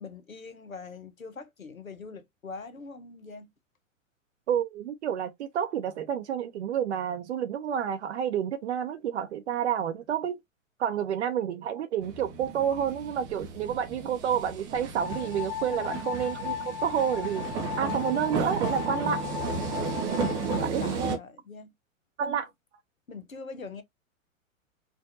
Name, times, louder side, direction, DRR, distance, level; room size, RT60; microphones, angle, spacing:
voice 1, 0.0-3.5 15.7-16.1 20.5-21.7 22.2-22.4 23.1-23.8, left 3 dB, 85° left, 0.9 m, -42 dB
voice 2, 4.5-10.4 10.8-17.5 17.8-19.2 20.6-21.2 22.2-22.5, right 9 dB, 55° right, 0.7 m, -29 dB
sound 1, 12.0-21.2, right 4 dB, 10° right, 0.3 m, -34 dB
sound 2, 15.0-20.6, left 10 dB, 50° left, 0.8 m, -36 dB
4.6 x 2.5 x 2.6 m
figure-of-eight pair, 105°, 40 cm